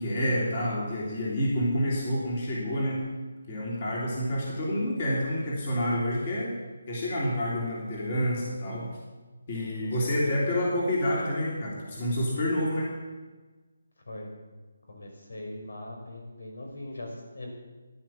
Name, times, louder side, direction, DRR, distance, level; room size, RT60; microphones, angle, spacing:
voice 1, 0.0-3.0 3.5-6.5 6.9-8.9 9.5-12.9, equal, 25° left, -4 dB, 3.0 m, -28 dB
voice 2, 9.8-10.5 14.1-14.3 14.9-17.5, left 1 dB, 80° left, 1 dB, 5.7 m, -40 dB
15.0 x 10.5 x 7.3 m, 1.3 s
hypercardioid pair, 180°, 0 cm